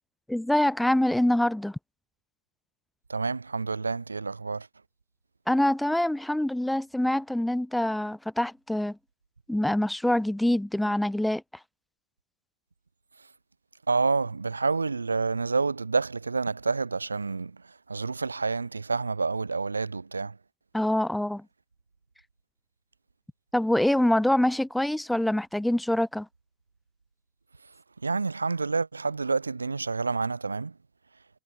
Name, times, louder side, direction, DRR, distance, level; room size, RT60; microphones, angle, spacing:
voice 1, 0.3-1.8 5.5-9.0 9.5-11.4 20.7-21.4 23.5-26.3, left 1 dB, 5° left, 7.8 m, -25 dB
voice 2, 3.1-4.7 13.9-20.4 28.0-30.8, right 4 dB, 80° right, 5.9 m, -28 dB
figure-of-eight pair, 90°, 0 cm